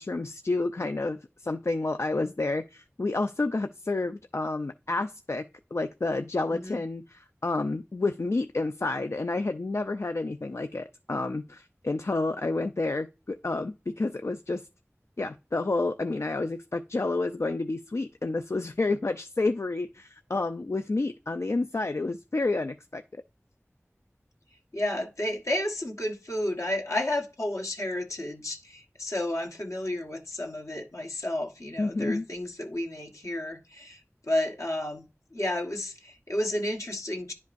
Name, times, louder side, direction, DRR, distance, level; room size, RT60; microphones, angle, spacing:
voice 1, 0.0-5.4 5.7-14.7 15.2-23.0 31.8-32.2, left 2 dB, 60° left, 0.3 m, -30 dB
voice 2, 24.7-34.0 34.3-37.3, left 1 dB, 80° left, 1.4 m, -31 dB
10.5 x 5.2 x 2.6 m
wide cardioid pair, 45°, 5 cm